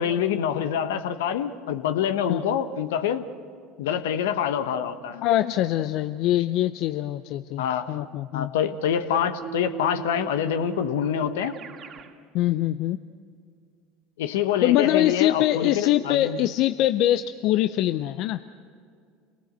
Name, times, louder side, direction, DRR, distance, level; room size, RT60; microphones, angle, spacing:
voice 1, 0.0-3.3 3.8-5.2 7.6-7.8 8.3-11.6 14.2-16.4, left 9 dB, 80° left, 10 dB, 1.1 m, -26 dB
voice 2, 5.2-8.5 12.3-13.0 14.6-18.4, left 13 dB, 60° left, 11 dB, 0.6 m, -23 dB
Keyboard (musical), 9.4-12.1, right 13 dB, 45° right, 2.2 m, -38 dB
28.0 x 18.5 x 8.0 m, 2.2 s
hypercardioid pair, 80°, 0 cm